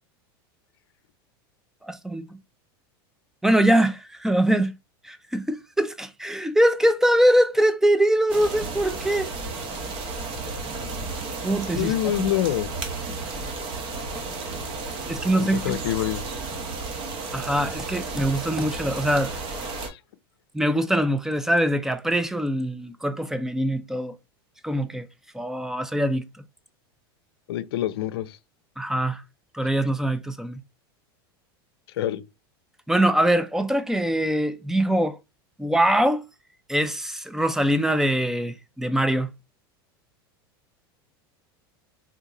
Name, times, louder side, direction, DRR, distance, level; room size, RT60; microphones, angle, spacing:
voice 1, 1.8-2.2 3.4-4.7 5.0-9.3 11.4-11.9 12.2-12.3 15.1-15.8 17.3-19.3 20.5-24.1 24.6-25.1 25.3-26.2 28.8-29.2 29.5-30.6 32.9-35.2 35.6-36.2 36.7-39.3, right 1 dB, 5° right, 0.4 m, -23 dB
sound 1, 8.3-19.9, right 3 dB, 45° right, 0.9 m, -33 dB
voice 2, 11.8-12.7 15.4-16.2 19.8-20.0 27.5-28.4 32.0-32.2, left 13 dB, 85° left, 0.5 m, -26 dB
3.6 x 2.8 x 2.4 m
supercardioid pair, 120°, 13 cm